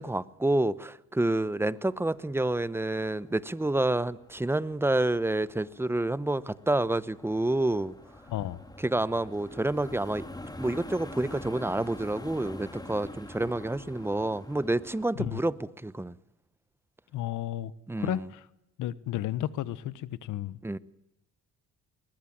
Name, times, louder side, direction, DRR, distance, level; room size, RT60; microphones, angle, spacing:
voice 1, 0.0-7.9 8.8-10.2 10.6-15.6 15.8-16.2 17.9-18.2 20.6-20.8, right 2 dB, 10° right, 0.9 m, -28 dB
sound 1, 1.7-15.1, left 1 dB, 15° left, 2.2 m, -46 dB
voice 2, 8.3-8.6 15.1-15.4 17.1-17.7 18.0-18.5 18.8-20.6, left 13 dB, 90° left, 1.2 m, -33 dB
21.0 x 20.5 x 8.8 m
cardioid pair, 90°, 30 cm